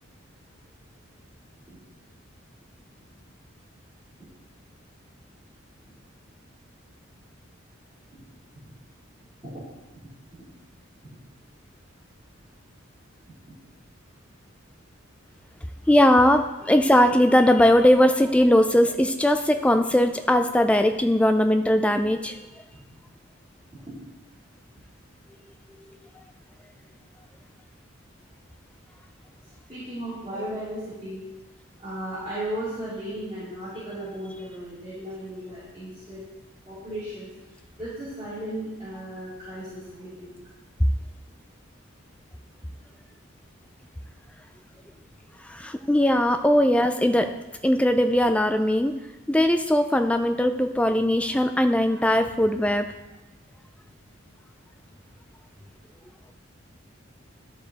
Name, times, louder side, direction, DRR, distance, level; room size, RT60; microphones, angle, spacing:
voice 1, 15.9-22.4 45.5-47.3 47.6-48.9 49.3-52.9, left 1 dB, 5° left, 7 dB, 0.3 m, -20 dB
voice 2, 29.7-31.2 31.8-36.2 36.6-37.3 37.8-40.3 47.1-47.2, right 1 dB, 25° right, -14 dB, 3.3 m, -35 dB
12.0 x 4.9 x 4.0 m, 1.1 s
head